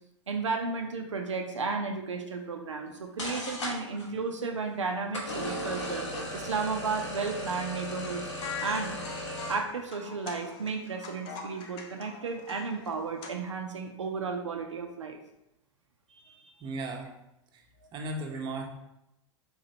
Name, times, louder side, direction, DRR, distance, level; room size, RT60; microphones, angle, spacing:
voice 1, 0.3-8.2 8.6-8.9 9.5-15.2 16.4-16.5, right 4 dB, 85° right, 3 dB, 0.4 m, -33 dB
sound 1, 2.9-3.0 3.2-4.1 5.1-9.6, left 1 dB, 80° left, 0.9 m, -36 dB
sound 2, 7.9-13.3, left 5 dB, 50° left, 0.6 m, -43 dB
voice 2, 16.6-17.1 17.9-18.7, right 2 dB, 30° right, 2 dB, 0.7 m, -35 dB
3.9 x 2.9 x 2.7 m, 0.86 s
figure-of-eight pair, 90°, 15 cm